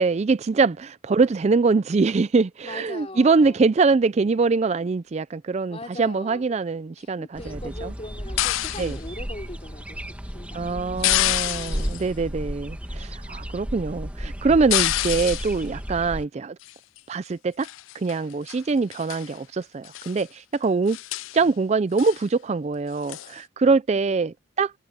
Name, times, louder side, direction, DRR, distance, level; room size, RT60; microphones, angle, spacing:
voice 1, 0.0-7.9 8.8-9.0 10.5-16.6 17.1-17.7 17.9-21.0 21.3-24.7, right 4 dB, 35° right, 0.4 m, -23 dB
voice 2, 2.6-3.6 5.7-6.4 7.0-11.9, left 1 dB, 30° left, 3.4 m, -41 dB
sound 1, 7.3-16.3, equal, 5° right, 1.9 m, -34 dB
sound 2, 8.4-9.0 11.0-12.0 14.7-15.6 16.6-17.0 17.6-18.2 18.5-18.6 18.9-19.3 19.8-20.2 20.5-20.6 20.9-21.4 22.0-22.2 23.1-23.3, left 16 dB, 75° left, 0.4 m, -27 dB
head